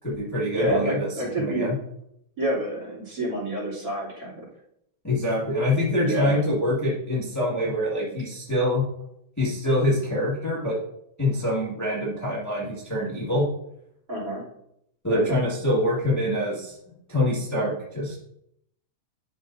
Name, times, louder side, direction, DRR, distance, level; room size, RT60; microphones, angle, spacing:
voice 1, 0.0-1.7 5.0-8.9 9.4-10.8 11.2-13.5 15.0-16.7 17.1-18.2, left 1 dB, 15° left, -7 dB, 0.6 m, -25 dB
voice 2, 0.5-1.7 2.4-4.4 6.0-6.4 14.1-14.4 15.1-15.4, equal, 30° right, -4 dB, 3.7 m, -28 dB
11.5 x 5.4 x 2.7 m, 0.76 s
omnidirectional pair, 4.0 m